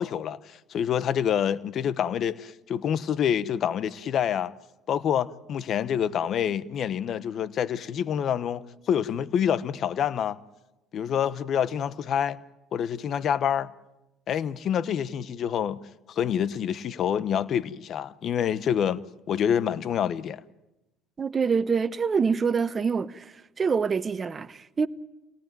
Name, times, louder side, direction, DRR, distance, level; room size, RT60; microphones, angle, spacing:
voice 1, 0.0-4.5 4.9-10.4 10.9-12.4 12.7-13.7 14.3-15.8 16.1-19.0 19.3-20.4, left 9 dB, 55° left, 1.1 m, -27 dB
voice 2, 21.2-24.9, right 5 dB, 35° right, 1.1 m, -26 dB
26.0 x 18.0 x 9.2 m
supercardioid pair, 80°, 0 cm